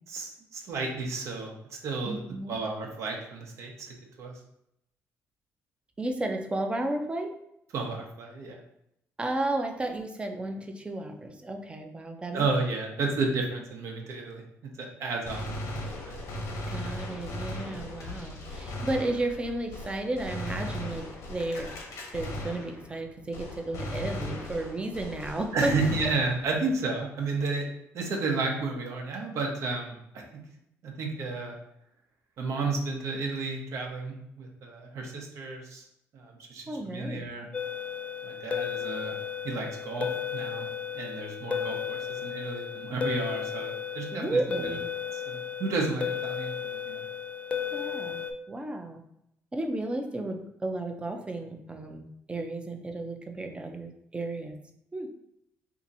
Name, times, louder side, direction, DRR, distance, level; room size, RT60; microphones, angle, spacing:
voice 1, 0.1-2.2 2.5-4.3 7.7-8.6 12.3-14.4 14.8-16.2 17.7-17.9 25.5-27.6 27.9-30.2 30.8-31.6 32.4-35.8 36.1-37.5 38.2-39.2 39.4-40.7 40.9-44.4 45.1-47.0, right 3 dB, 65° right, 1 dB, 0.9 m, -32 dB
voice 2, 2.1-2.6 6.0-7.4 9.2-12.5 16.7-21.7 22.1-25.8 36.7-37.3 44.1-44.9 47.7-49.0 49.5-54.6 54.9-55.1, right 2 dB, 20° right, 4 dB, 0.6 m, -33 dB
Gunshot gunfire, 15.3-23.1 23.3-26.7, left 1 dB, 75° left, 1.0 m, -37 dB
sound 1, 37.5-48.3, left 8 dB, 25° left, 0.4 m, -34 dB
2.8 x 2.6 x 4.0 m, 0.78 s
cardioid pair, 85°, 5 cm